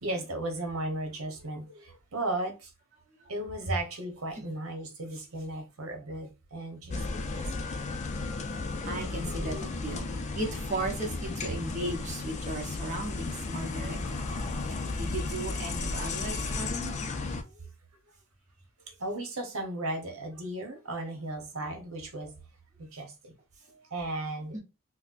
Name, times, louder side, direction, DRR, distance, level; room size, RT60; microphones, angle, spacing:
voice 1, 0.0-2.7 3.2-8.2 10.1-10.2 14.4-14.5 16.6-17.0 17.4-17.7 18.8-22.3 22.8-23.3 23.7-24.6, right 1 dB, 70° right, 1.0 m, -36 dB
sound 1, 6.9-17.4, left 3 dB, 30° left, 0.4 m, -34 dB
sound 2, 7.2-16.7, left 3 dB, 75° left, 0.7 m, -47 dB
voice 2, 8.8-14.2 15.0-16.9 24.5-24.6, right 1 dB, 35° right, 0.9 m, -36 dB
4.1 x 2.1 x 2.5 m
head